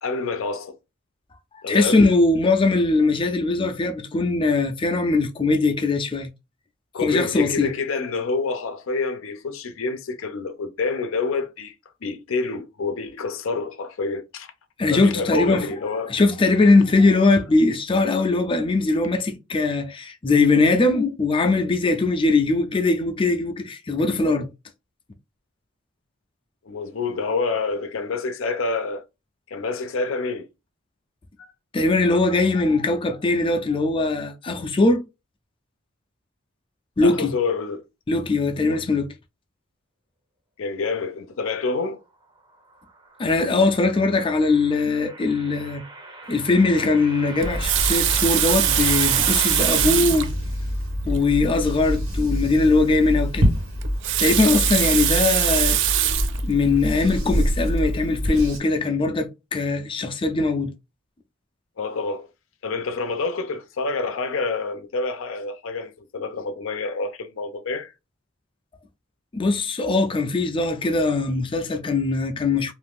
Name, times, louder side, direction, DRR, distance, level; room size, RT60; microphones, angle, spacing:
voice 1, 0.0-0.8 1.6-2.0 6.9-11.7 12.0-14.5 14.9-16.1 26.6-29.0 29.5-30.5 31.4-31.5 37.0-37.8 38.6-38.8 40.6-42.0 43.6-43.9 61.8-62.3 62.6-67.9, left 4 dB, 80° left, 0.5 m, -27 dB
voice 2, 1.7-6.3 7.0-7.7 14.8-15.6 16.1-24.5 31.7-35.0 37.0-37.3 38.1-39.1 43.2-45.8 46.3-50.3 51.1-53.5 54.2-55.8 56.1-60.7 69.3-72.7, left 3 dB, 25° left, 0.4 m, -21 dB
sound 1, 42.5-50.3, right 2 dB, 25° right, 0.7 m, -37 dB
Water tap faucet, 47.4-50.3 51.1-51.2 51.5-51.6 53.8-56.4 57.1-57.3, right 12 dB, 60° right, 0.3 m, -22 dB
sound 2, 47.4-58.6, equal, 85° right, 1.3 m, -26 dB
2.6 x 2.4 x 3.4 m
head